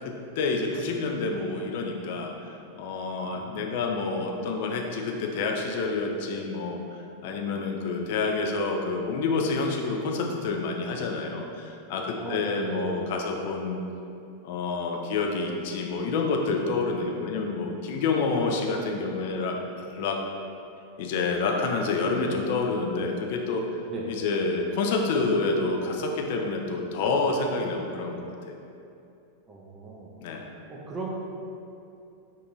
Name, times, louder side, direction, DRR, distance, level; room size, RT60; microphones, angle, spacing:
voice 1, 0.0-13.8 14.4-20.2 21.0-23.6 24.1-28.3 30.2-30.5, left 3 dB, 50° left, 2 dB, 0.4 m, -28 dB
voice 2, 3.3-3.7 12.2-12.9 23.9-24.1 29.5-30.1 30.7-31.1, right 3 dB, 20° right, -4 dB, 0.5 m, -37 dB
2.7 x 2.5 x 4.0 m, 2.7 s
figure-of-eight pair, 90°, 0 cm